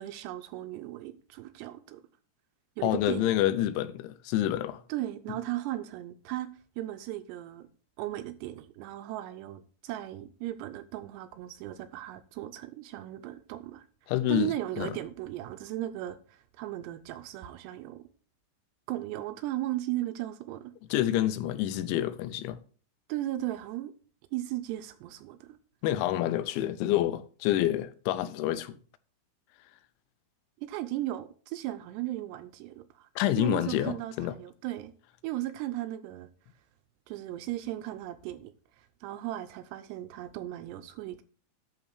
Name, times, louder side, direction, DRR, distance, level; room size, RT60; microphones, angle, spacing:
voice 1, 0.0-2.0 2.8-3.3 4.9-6.5 6.8-7.7 8.0-13.9 14.3-18.0 18.9-20.7 23.1-23.9 24.3-25.6 30.6-33.1 33.4-34.9 35.2-36.3 37.1-38.5 38.8-41.2, right 14 dB, 80° right, 2.6 m, -36 dB
voice 2, 2.8-4.8 14.1-14.9 20.9-22.6 25.8-28.8 33.2-34.3, left 13 dB, 85° left, 3.1 m, -28 dB
11.5 x 3.9 x 6.4 m
omnidirectional pair, 5.2 m